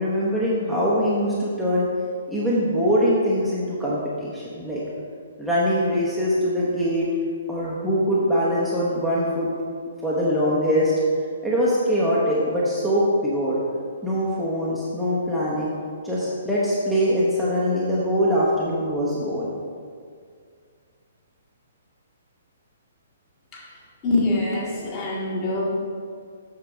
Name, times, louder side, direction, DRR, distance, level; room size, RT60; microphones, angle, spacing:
voice 1, 0.0-1.9 2.3-4.8 5.4-7.1 7.5-9.5 10.0-10.9 11.4-13.6 14.0-15.7 16.0-19.5, equal, ahead, -9 dB, 1.0 m, -23 dB
voice 2, 24.0-25.8, left 2 dB, 25° left, -4 dB, 1.7 m, -25 dB
7.7 x 6.4 x 3.5 m, 2.1 s
figure-of-eight pair, 125°, 0 cm